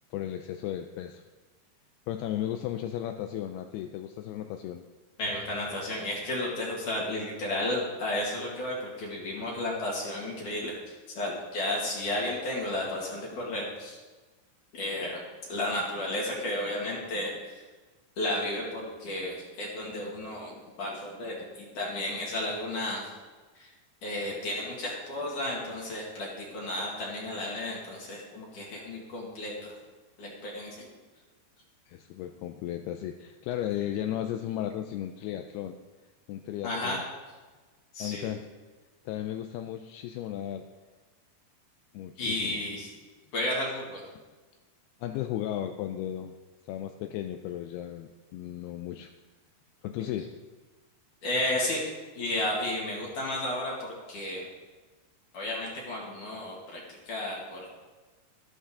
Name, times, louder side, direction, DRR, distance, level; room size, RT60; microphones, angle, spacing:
voice 1, 0.1-1.2 2.1-4.8 31.9-35.8 36.3-37.0 38.0-38.5 39.1-40.7 41.9-42.6 45.0-46.3 46.7-49.1 49.8-50.3, left 11 dB, 80° left, 6 dB, 2.4 m, -35 dB
voice 2, 5.2-14.0 14.7-15.2 15.5-17.6 18.2-23.1 23.5-23.7 24.0-29.8 30.2-30.9 36.6-37.0 37.9-38.3 42.2-42.9 43.3-44.0 50.0-50.1 51.2-51.8 52.1-54.5 55.3-57.7, left 1 dB, 55° left, -4 dB, 3.2 m, -33 dB
13.0 x 11.5 x 3.7 m, 1.3 s
omnidirectional pair, 4.6 m